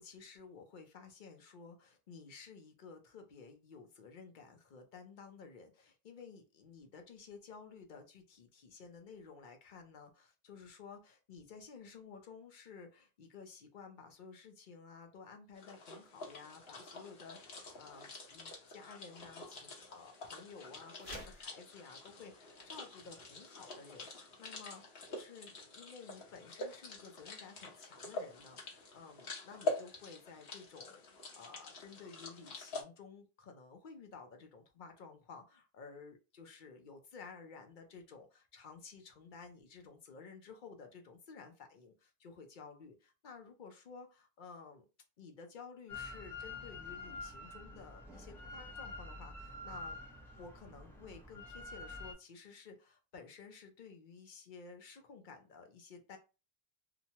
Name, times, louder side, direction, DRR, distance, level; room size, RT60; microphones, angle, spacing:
voice 1, 0.0-44.9 45.2-50.0 50.3-56.2, left 5 dB, 60° left, 5 dB, 0.7 m, -53 dB
sound 1, 15.6-32.8, left 2 dB, 80° left, 1.0 m, -46 dB
sound 2, 21.0-21.5, equal, 40° right, 0.9 m, -48 dB
Drill, 45.9-52.1, left 2 dB, 5° left, 0.5 m, -47 dB
2.8 x 2.1 x 2.7 m, 0.30 s
omnidirectional pair, 1.0 m